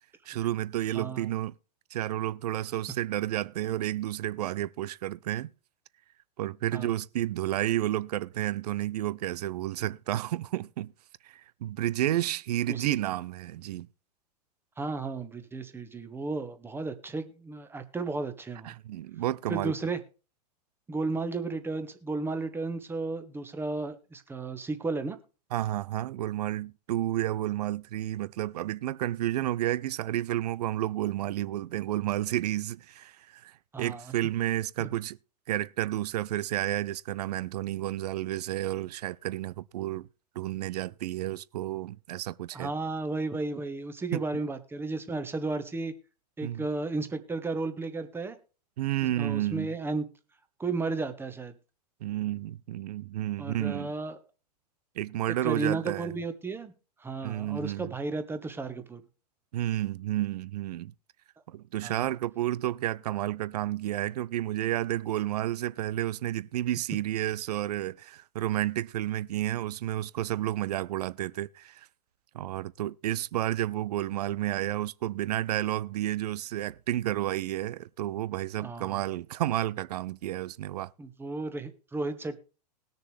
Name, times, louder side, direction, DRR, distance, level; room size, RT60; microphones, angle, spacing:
voice 1, 0.3-1.5 1.9-5.5 6.4-10.9 11.2-13.9 18.6-19.7 25.5-35.2 35.5-40.1 40.4-42.7 44.1-44.2 46.4-46.6 48.8-49.7 52.0-53.9 55.0-56.1 57.2-57.9 59.5-60.9 61.5-71.9 72.3-80.9, right 14 dB, 70° right, 0.5 m, -31 dB
voice 2, 0.9-1.3 6.7-6.9 12.7-12.9 14.8-18.7 19.5-20.0 20.9-25.2 33.7-34.1 34.8-34.9 42.5-45.9 46.4-48.4 49.0-50.0 50.6-51.5 53.4-54.2 55.4-56.7 57.0-59.0 61.8-62.1 78.6-79.0 81.0-82.4, right 3 dB, 10° right, 1.2 m, -33 dB
20.0 x 6.7 x 3.3 m
hypercardioid pair, 115°, 21 cm